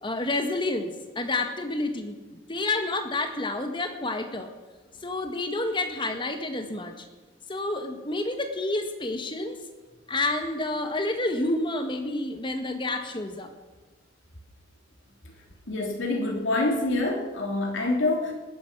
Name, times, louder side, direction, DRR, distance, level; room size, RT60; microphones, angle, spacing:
voice 1, 0.0-4.5 5.0-6.9 7.5-9.6 10.1-13.5, left 2 dB, 25° left, 6 dB, 1.6 m, -29 dB
voice 2, 15.7-18.3, left 2 dB, 85° left, 0 dB, 3.2 m, -26 dB
19.0 x 10.5 x 6.1 m, 1.2 s
head